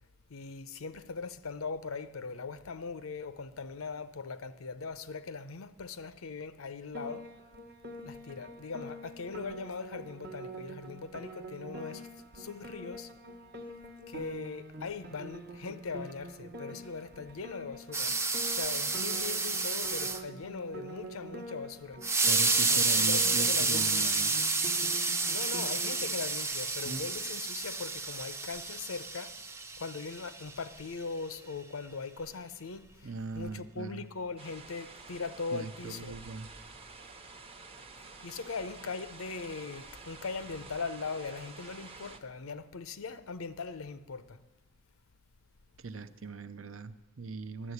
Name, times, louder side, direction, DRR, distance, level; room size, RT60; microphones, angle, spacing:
voice 1, 0.3-7.2 8.0-12.1 12.3-13.1 14.1-18.1 18.5-22.0 22.7-24.2 25.3-29.3 29.8-36.2 38.2-44.4, left 4 dB, 85° left, 0.7 m, -40 dB
Piano, 6.9-26.1, right 1 dB, 50° right, 0.9 m, -46 dB
sound 1, 17.9-20.2 22.0-30.4, right 3 dB, 15° right, 0.5 m, -30 dB
voice 2, 22.3-24.5 26.8-27.0 33.0-34.0 35.5-36.5 45.8-47.7, right 4 dB, 65° right, 0.7 m, -40 dB
sound 2, 34.4-42.2, right 3 dB, 30° right, 0.8 m, -49 dB
11.5 x 7.4 x 9.5 m
head